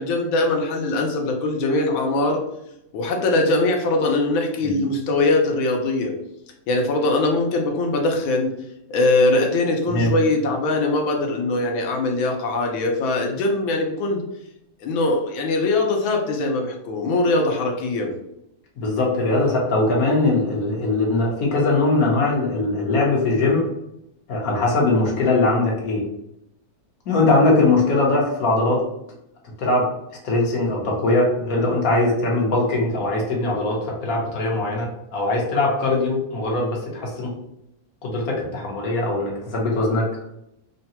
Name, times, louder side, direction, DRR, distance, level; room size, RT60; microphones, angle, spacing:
voice 1, 0.0-2.4 2.9-6.1 6.7-8.5 8.9-14.2 14.8-18.1, left 2 dB, 90° left, 2 dB, 1.6 m, -21 dB
voice 2, 9.9-10.2 18.8-23.7 24.3-26.0 27.1-28.8 29.6-29.9 30.2-37.3 38.0-40.1, left 2 dB, 55° left, -2 dB, 1.3 m, -21 dB
3.8 x 2.2 x 4.2 m, 0.81 s
omnidirectional pair, 2.1 m